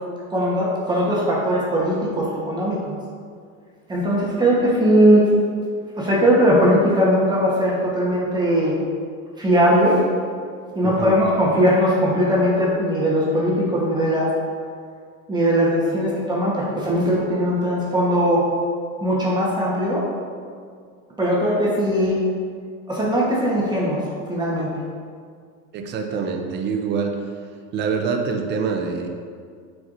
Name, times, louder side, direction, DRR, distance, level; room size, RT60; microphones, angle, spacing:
voice 1, 0.3-2.9 3.9-5.3 6.0-8.7 9.4-10.0 10.7-14.3 15.3-18.5 19.0-20.0 21.2-22.2 22.9-24.7, equal, 10° right, -6 dB, 1.2 m, -19 dB
voice 2, 10.8-11.2 25.7-27.2 27.7-29.1, right 5 dB, 25° right, 3 dB, 0.6 m, -25 dB
9.4 x 4.7 x 2.6 m, 2.1 s
supercardioid pair, 140°, 41 cm